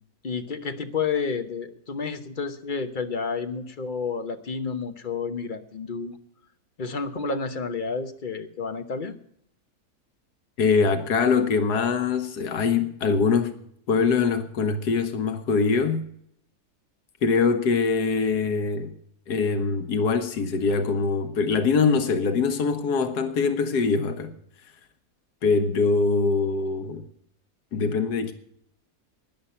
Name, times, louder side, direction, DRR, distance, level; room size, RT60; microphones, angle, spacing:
voice 1, 0.2-6.2 6.8-9.1, left 5 dB, 35° left, 1.0 m, -30 dB
voice 2, 10.6-13.6 13.9-16.0 17.2-18.9 19.3-24.3 25.4-27.0 27.7-28.3, left 4 dB, 90° left, 1.6 m, -23 dB
13.0 x 9.9 x 5.6 m
omnidirectional pair, 1.7 m